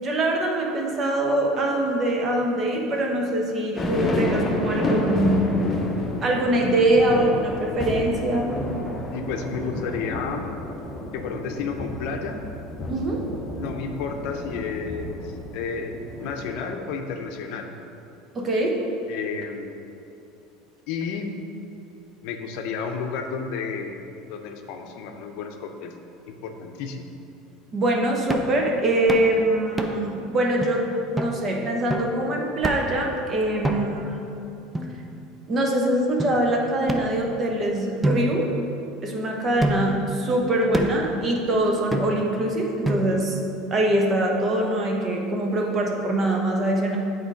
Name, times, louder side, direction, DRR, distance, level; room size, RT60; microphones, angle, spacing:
voice 1, 0.0-5.6 6.2-8.6 12.9-13.2 18.3-18.8 27.7-30.9 31.1-34.2 35.5-38.5 39.0-43.4 43.7-47.0, right 1 dB, 35° right, 0 dB, 1.2 m, -23 dB
sound 1, 3.8-16.5, left 1 dB, 20° left, 1.0 m, -30 dB
voice 2, 9.1-10.5 11.1-12.4 13.6-15.9 16.2-17.7 19.1-19.8 20.9-21.3 22.2-24.0 24.3-25.9 26.3-27.1, left 5 dB, 70° left, 4 dB, 0.6 m, -31 dB
sound 2, 28.3-28.6 29.1-29.3 29.8-30.1 30.6-30.7 31.2-31.4 31.9-32.2 32.6-33.0 33.6-34.1 34.7-35.5 36.2-36.3 36.9-37.6 38.0-39.1 39.6-40.0 40.7-41.1 41.9-42.4 42.8-43.4, equal, 10° right, 0.6 m, -28 dB
8.1 x 3.9 x 5.0 m, 2.8 s
supercardioid pair, 110°, 0 cm